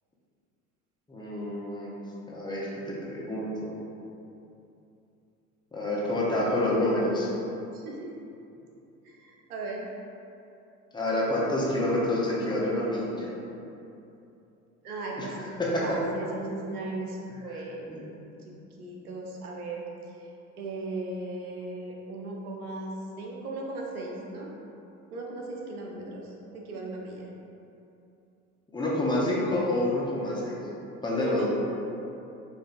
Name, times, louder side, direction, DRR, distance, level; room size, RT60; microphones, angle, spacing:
voice 1, 1.1-1.9 2.3-2.7 3.1-3.7 5.7-7.3 10.9-13.3 15.2-15.3 15.6-16.0 17.9-18.0 28.7-30.6 31.0-31.5, left 1 dB, 10° left, -6 dB, 0.7 m, -28 dB
voice 2, 7.7-8.1 9.0-9.8 14.8-15.5 15.8-17.8 18.4-19.8 20.6-24.5 25.1-27.3 31.2-31.5, right 2 dB, 85° right, -1 dB, 0.7 m, -37 dB
5.1 x 2.6 x 2.5 m, 2.8 s
hypercardioid pair, 80°, 43 cm